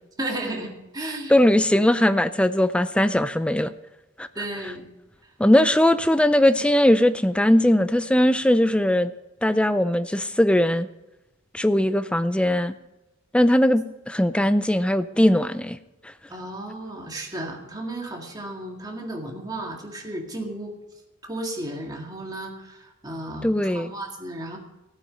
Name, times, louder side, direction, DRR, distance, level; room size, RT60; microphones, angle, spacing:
voice 1, 0.2-1.4 1.7-1.8 4.4-4.8 16.3-20.8 21.3-24.6, right 1 dB, 20° right, 1 dB, 2.0 m, -34 dB
voice 2, 1.3-3.7 4.2-4.3 5.4-9.1 9.4-10.9 11.5-12.7 13.3-15.8 23.4-23.9, left 1 dB, 5° left, 13 dB, 0.4 m, -19 dB
15.5 x 8.8 x 5.3 m, 0.96 s
head